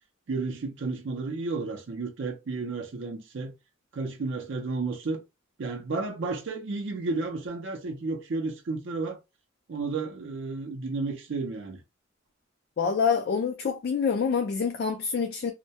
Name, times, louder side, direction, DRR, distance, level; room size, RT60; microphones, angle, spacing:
voice 1, 0.3-3.5 3.9-5.2 5.6-9.2 9.7-11.8, right 3 dB, 60° right, 0.5 m, -32 dB
voice 2, 12.8-15.5, left 6 dB, 55° left, 0.3 m, -26 dB
2.2 x 2.1 x 2.7 m
head